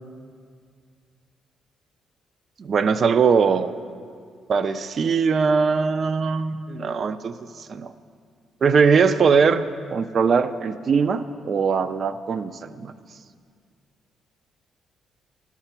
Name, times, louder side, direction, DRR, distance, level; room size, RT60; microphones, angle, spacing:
voice 1, 2.6-3.7 4.5-7.9 8.6-12.9, right 5 dB, 50° right, 12 dB, 0.4 m, -21 dB
12.5 x 5.7 x 5.9 m, 2.1 s
cardioid pair, 90°, 0 cm